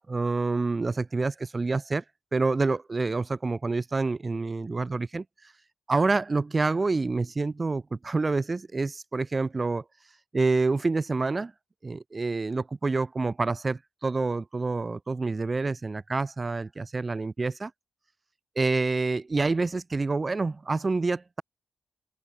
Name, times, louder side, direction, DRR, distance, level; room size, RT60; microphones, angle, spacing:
voice 1, 0.1-2.0 2.3-5.2 5.9-9.8 10.3-11.5 11.8-17.7 18.5-21.4, right 3 dB, 40° right, 1.7 m, -27 dB
open air
supercardioid pair, 40°, 0 cm